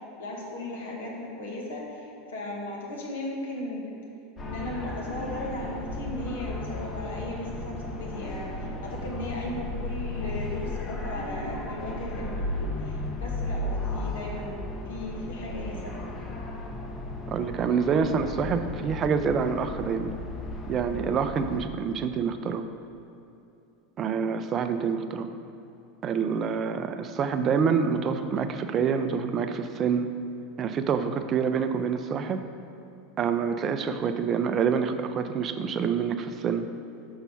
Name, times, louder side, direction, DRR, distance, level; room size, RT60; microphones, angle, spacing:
voice 1, 0.2-3.9 4.4-16.3, left 1 dB, 80° left, -3 dB, 1.6 m, -36 dB
sound 1, 4.4-21.7, left 2 dB, 30° left, 1.0 m, -35 dB
voice 2, 17.3-20.1 20.7-22.6 24.0-25.3 26.0-30.1 30.6-32.4 33.2-36.7, right 6 dB, 40° right, 8 dB, 0.5 m, -27 dB
5.8 x 5.6 x 5.6 m, 2.8 s
hypercardioid pair, 90°, 0 cm